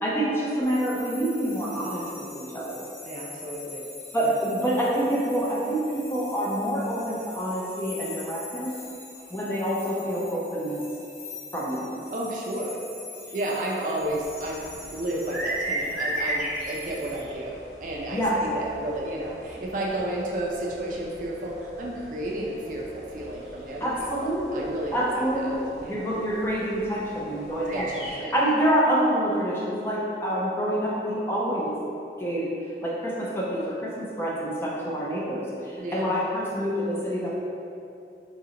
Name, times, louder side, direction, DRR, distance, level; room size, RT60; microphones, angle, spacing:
voice 1, 0.0-2.8 4.1-8.7 9.3-10.8 11.5-11.9 18.1-18.4 23.8-31.8 32.2-32.5 32.8-37.3, right 1 dB, 15° left, -5 dB, 0.4 m, -27 dB
sound 1, 0.6-17.2, left 4 dB, 90° left, 0.7 m, -44 dB
voice 2, 3.0-3.9 4.2-4.4 12.1-12.8 13.3-26.1 27.7-28.3 35.8-36.1, right 1 dB, 45° right, -2 dB, 0.4 m, -32 dB
sound 2, 14.0-28.1, right 1 dB, 5° right, 0.8 m, -37 dB
4.1 x 2.5 x 2.8 m, 2.6 s
head